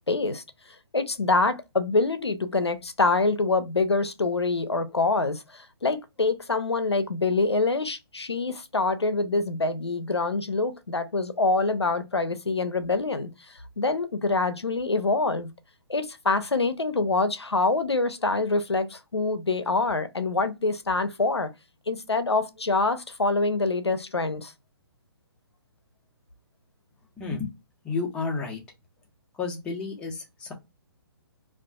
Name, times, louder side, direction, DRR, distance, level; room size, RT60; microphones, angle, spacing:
voice 1, 0.1-0.4 0.9-13.3 13.8-15.5 15.9-21.5 21.9-24.5, left 3 dB, 80° left, 0.5 m, -25 dB
voice 2, 27.2-27.5 27.8-28.6 29.4-30.5, left 4 dB, 5° left, 0.5 m, -31 dB
2.4 x 2.3 x 2.3 m
figure-of-eight pair, 135°, 14 cm